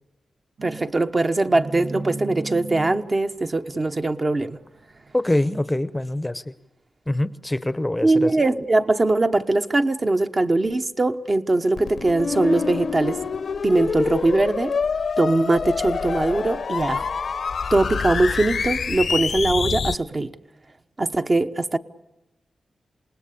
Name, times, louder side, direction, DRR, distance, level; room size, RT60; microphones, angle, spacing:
voice 1, 0.6-4.6 8.0-13.2 13.6-14.8 15.2-17.1 17.7-20.3 21.0-21.8, right 2 dB, 30° right, 1.1 m, -21 dB
sound 1, 0.6-5.5, right 3 dB, 85° right, 2.0 m, -37 dB
voice 2, 5.1-6.5 7.1-8.3, left 1 dB, 10° left, 0.8 m, -24 dB
sound 2, 11.8-19.9, left 5 dB, 65° left, 0.8 m, -26 dB
28.0 x 19.5 x 8.5 m
wide cardioid pair, 105°, 0 cm